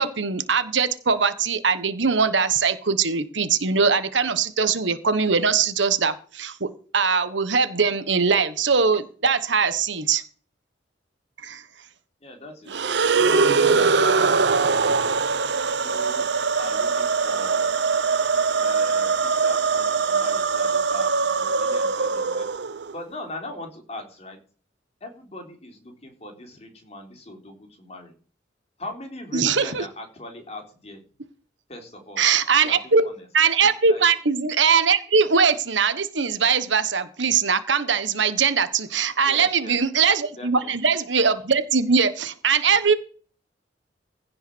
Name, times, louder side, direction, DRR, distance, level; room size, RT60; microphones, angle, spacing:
voice 1, 0.0-6.7 6.9-10.2 11.4-11.6 13.1-13.2 29.3-29.8 32.2-33.0 33.3-43.0, right 5 dB, 85° right, 12 dB, 1.4 m, -21 dB
voice 2, 12.2-15.2 15.8-16.2 16.6-17.7 18.6-22.5 22.9-24.4 25.0-28.1 28.8-31.0 31.7-32.2 32.6-33.3 33.9-34.0 39.2-39.8 40.4-40.7, left 1 dB, 35° left, 3 dB, 3.7 m, -40 dB
sound 1, 12.7-22.9, right 4 dB, 65° right, 0.8 m, -22 dB
16.0 x 5.7 x 6.3 m, 0.41 s
head